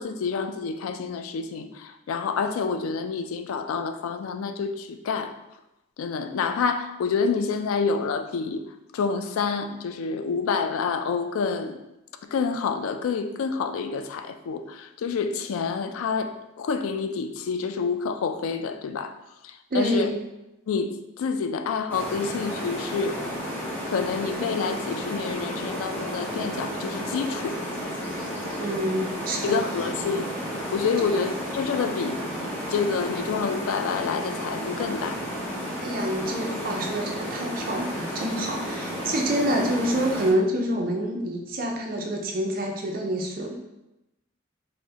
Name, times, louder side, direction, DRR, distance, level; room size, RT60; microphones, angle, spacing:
voice 1, 0.0-5.3 6.0-8.6 8.9-11.8 12.3-19.1 19.4-20.1 20.7-20.9 21.2-23.2 23.9-27.6 29.4-30.3 30.7-32.2 32.7-35.2, left 5 dB, 85° left, 8 dB, 0.3 m, -28 dB
voice 2, 19.7-20.1 28.6-29.6 31.0-31.1 35.8-43.6, right 1 dB, 45° right, 1 dB, 0.5 m, -27 dB
sound 1, 21.9-40.3, equal, 10° left, 0.6 m, -32 dB
5.3 x 2.1 x 2.7 m, 0.94 s
head